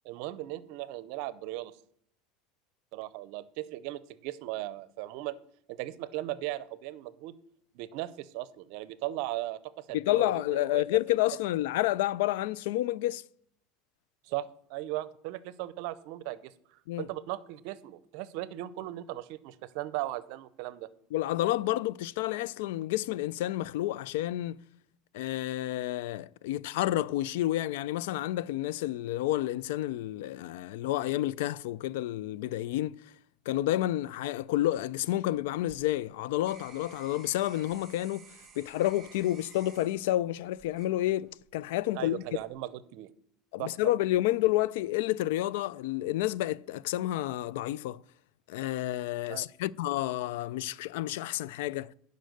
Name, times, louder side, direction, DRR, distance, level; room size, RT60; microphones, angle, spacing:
voice 1, 0.0-1.8 2.9-5.4 5.7-7.3 7.7-10.8 14.2-20.9 41.9-43.1 43.6-43.7 49.3-49.5, right 16 dB, 65° right, 0.6 m, -37 dB
voice 2, 9.9-13.2 16.9-17.1 21.1-24.6 25.1-33.0 33.5-38.3 38.6-42.2 43.5-48.0 48.5-51.9, left 15 dB, 80° left, 0.3 m, -30 dB
sound 1, 35.3-41.5 42.1-42.5, right 6 dB, 25° right, 1.8 m, -55 dB
10.0 x 5.3 x 6.6 m
supercardioid pair, 125°, 0 cm